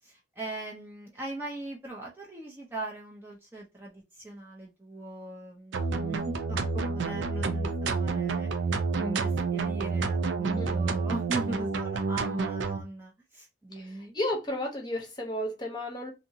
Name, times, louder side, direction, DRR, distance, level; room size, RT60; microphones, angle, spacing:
voice 1, 0.0-8.5 8.9-14.2, right 2 dB, 10° right, 0.5 m, -39 dB
sound 1, 5.7-12.8, right 4 dB, 80° right, 0.5 m, -29 dB
voice 2, 13.7-16.1, left 1 dB, 25° left, 0.8 m, -33 dB
2.7 x 2.6 x 2.6 m
head